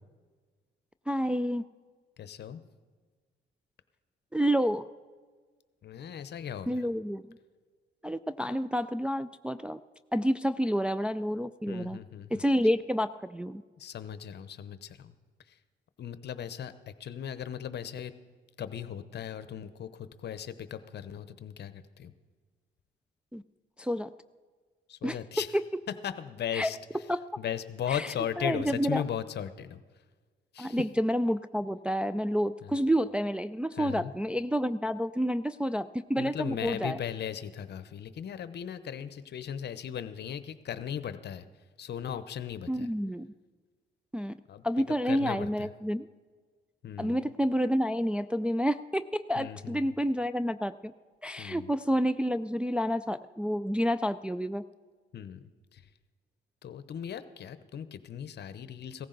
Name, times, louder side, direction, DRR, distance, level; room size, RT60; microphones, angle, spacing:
voice 1, 1.1-1.6 4.3-4.9 6.7-7.2 8.0-9.8 10.1-12.0 12.3-13.6 23.3-23.4 23.8-24.1 25.0-25.2 25.5-25.6 26.5-26.7 27.1-27.2 27.9-29.0 30.6-37.0 42.7-43.3 44.1-44.3 44.6-46.1 47.0-50.9 51.2-54.6, equal, 5° right, 10 dB, 0.3 m, -29 dB
voice 2, 2.2-2.6 5.8-6.9 11.7-12.4 13.8-15.1 16.0-18.1 18.6-22.1 24.9-25.6 26.0-26.8 27.4-29.8 30.5-30.8 32.6-32.8 33.8-34.1 36.2-41.4 41.8-42.9 44.5-44.6 45.0-45.7 46.8-47.2 49.4-49.9 51.4-51.7 55.1-55.8 56.6-59.1, left 9 dB, 60° left, 12 dB, 0.8 m, -37 dB
16.5 x 14.5 x 3.9 m, 1.5 s
cardioid pair, 90°, 20 cm